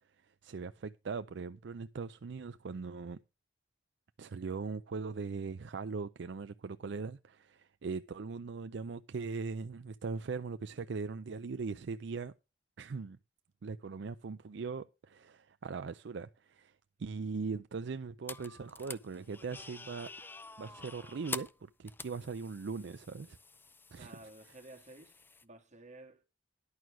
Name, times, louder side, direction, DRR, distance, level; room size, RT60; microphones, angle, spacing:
voice 1, 0.2-3.2 4.2-12.3 12.8-13.2 13.6-20.1 20.6-23.4 23.9-24.1, right 4 dB, 65° right, 0.5 m, -40 dB
sound 1, 18.3-25.4, left 3 dB, 10° left, 0.5 m, -47 dB
voice 2, 23.9-26.2, right 2 dB, 40° right, 2.3 m, -53 dB
11.0 x 6.1 x 6.1 m
head